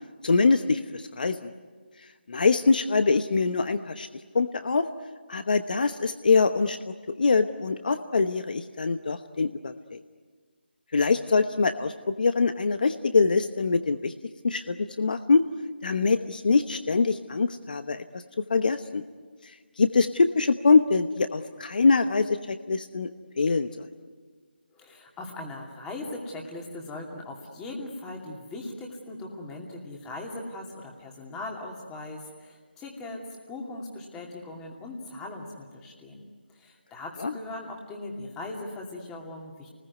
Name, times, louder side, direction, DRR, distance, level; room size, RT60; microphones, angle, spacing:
voice 1, 0.2-1.4 2.3-4.1 4.3-4.9 5.3-10.0 10.9-14.1 14.4-15.5 15.8-18.2 18.5-19.0 19.8-23.1 23.4-23.9 37.2-37.3, left 4 dB, 55° left, 10 dB, 1.0 m, -24 dB
voice 2, 24.7-36.2 36.5-39.7, left 2 dB, 10° left, 0 dB, 2.5 m, -39 dB
28.5 x 20.5 x 9.6 m, 1.5 s
figure-of-eight pair, 165°, 6 cm